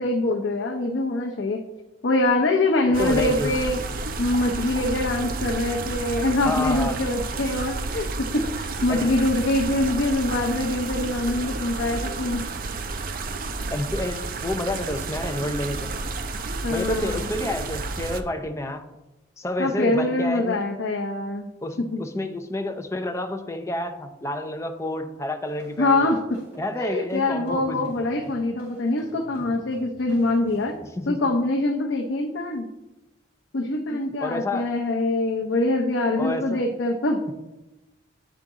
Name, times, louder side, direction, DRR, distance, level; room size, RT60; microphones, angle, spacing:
voice 1, 0.0-1.6 2.0-3.8 4.2-12.4 16.6-17.3 19.6-21.5 21.8-22.0 25.8-26.2 26.8-30.7 31.1-32.7 33.5-37.2, left 2 dB, 75° left, 1 dB, 0.6 m, -24 dB
sound 1, 2.9-18.2, right 3 dB, 45° right, 0.5 m, -31 dB
voice 2, 3.0-3.5 6.4-7.0 8.9-9.1 13.7-15.9 16.7-18.8 19.4-20.6 21.6-26.0 26.6-27.9 31.0-31.2 33.9-34.7 36.2-36.6, left 1 dB, 15° left, 6 dB, 0.5 m, -29 dB
sound 2, 25.4-30.8, equal, 10° right, 2.5 m, -47 dB
10.0 x 3.9 x 3.6 m, 1.0 s
head